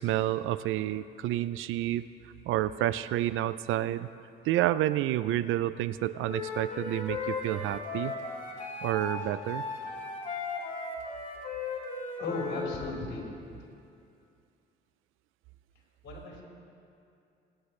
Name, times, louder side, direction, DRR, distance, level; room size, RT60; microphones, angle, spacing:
voice 1, 0.0-2.0 2.5-4.1 4.4-8.1 8.8-9.6, right 14 dB, 90° right, 15 dB, 0.4 m, -29 dB
Wind instrument woodwind instrument, 6.2-12.7, left 3 dB, 40° left, 2.9 m, -36 dB
voice 2, 12.2-13.2 16.0-16.4, left 2 dB, 70° left, -3 dB, 4.1 m, -35 dB
26.5 x 10.0 x 3.2 m, 2.5 s
cardioid pair, 90°, 20 cm